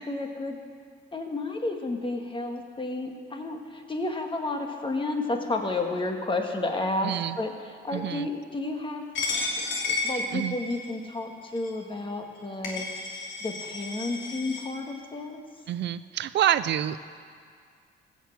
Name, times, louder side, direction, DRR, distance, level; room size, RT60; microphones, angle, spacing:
voice 1, 0.1-0.6 1.1-7.5 7.8-9.1 9.9-12.9 13.4-15.4, left 2 dB, 25° left, 3 dB, 1.6 m, -31 dB
voice 2, 7.0-7.4 7.9-8.3 10.3-10.6 15.7-17.0, right 11 dB, 60° right, 14 dB, 0.4 m, -27 dB
Coin (dropping), 9.2-10.9 11.6-11.7 12.4-12.5 12.6-14.6, left 3 dB, 75° left, 2.8 m, -32 dB
15.5 x 6.5 x 7.9 m, 2.1 s
cardioid pair, 90°, 20 cm